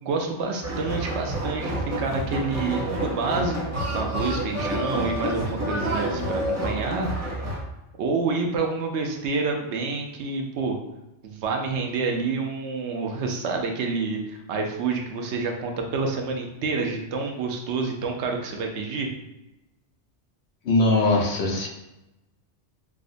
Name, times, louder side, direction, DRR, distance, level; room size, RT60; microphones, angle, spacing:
voice 1, 0.0-7.1 8.0-10.8 11.2-19.1, right 4 dB, 85° right, 3 dB, 0.9 m, -28 dB
sound 1, 0.6-7.6, right 1 dB, 20° right, 0.5 m, -29 dB
voice 2, 20.6-21.7, left 2 dB, 70° left, -1 dB, 1.0 m, -21 dB
4.6 x 2.0 x 2.5 m, 0.93 s
omnidirectional pair, 1.1 m